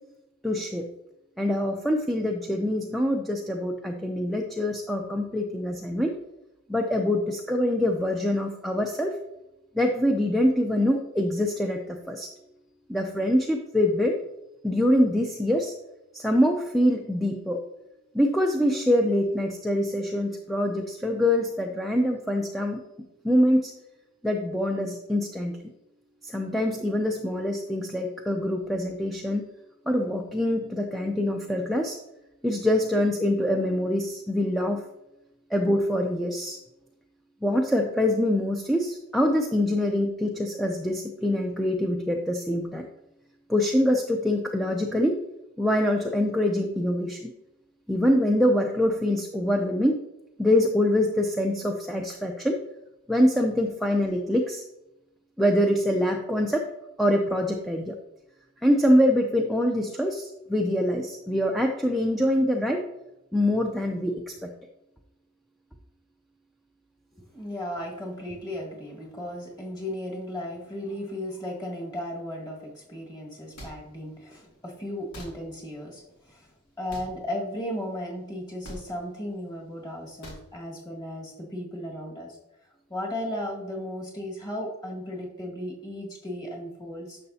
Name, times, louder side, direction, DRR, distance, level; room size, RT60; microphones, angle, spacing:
voice 1, 0.4-0.8 1.4-6.1 6.7-9.2 9.7-12.3 12.9-14.2 14.6-15.7 16.1-17.6 18.1-22.8 23.2-23.7 24.2-25.5 26.2-29.4 29.9-32.0 32.4-34.8 35.5-36.6 37.4-42.9 43.5-45.2 45.6-47.3 47.9-50.0 50.4-52.6 53.1-54.6 55.4-56.7 57.0-57.9 58.6-62.8 63.3-64.5, left 1 dB, ahead, 2 dB, 0.5 m, -24 dB
voice 2, 67.3-76.0 76.3-76.4 76.8-82.4 82.9-87.2, left 1 dB, 20° left, -1 dB, 1.8 m, -35 dB
sound 1, 73.6-73.7 75.1-75.3 76.9-77.1 78.6-78.8 80.2-80.4, equal, 85° left, 2.5 m, -40 dB
11.0 x 6.5 x 2.8 m, 0.90 s
head